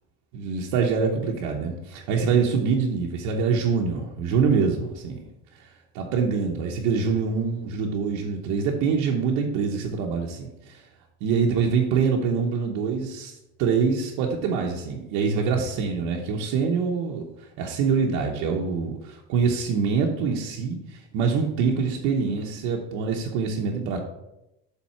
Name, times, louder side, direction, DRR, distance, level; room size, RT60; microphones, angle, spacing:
voice 1, 0.3-5.2 5.6-5.7 5.9-10.8 11.2-13.3 13.6-24.0, right 5 dB, 55° right, 0 dB, 0.9 m, -25 dB
7.3 x 3.7 x 5.7 m, 0.90 s
cardioid pair, 170°, 34 cm